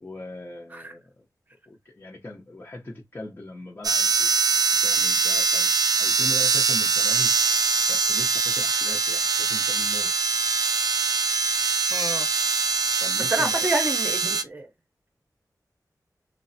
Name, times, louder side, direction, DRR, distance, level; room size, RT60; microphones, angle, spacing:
voice 1, 0.0-1.3 1.7-4.5 4.8-5.7 6.0-7.3 7.9-10.1 13.0-13.7, left 2 dB, 35° left, 0.6 m, -39 dB
sound 1, 3.8-14.4, right 4 dB, 70° right, 0.3 m, -23 dB
voice 2, 11.9-12.3 13.3-14.7, right 2 dB, 25° right, 0.7 m, -28 dB
3.2 x 2.0 x 2.6 m
wide cardioid pair, 75°, 7 cm